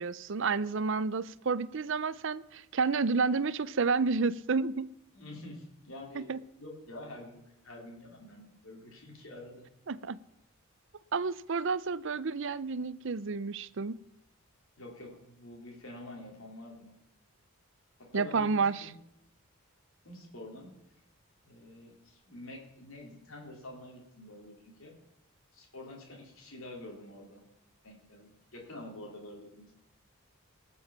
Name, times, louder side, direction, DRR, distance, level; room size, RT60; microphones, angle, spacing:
voice 1, 0.0-4.9 6.2-6.4 9.9-10.2 11.1-14.0 18.1-18.9, right 4 dB, 55° right, 0.5 m, -30 dB
voice 2, 5.1-9.7 14.8-17.0 18.1-18.9 20.0-20.7 21.4-24.9 25.5-27.4 27.8-29.7, left 1 dB, 65° left, 3.8 m, -47 dB
18.0 x 7.0 x 7.3 m
head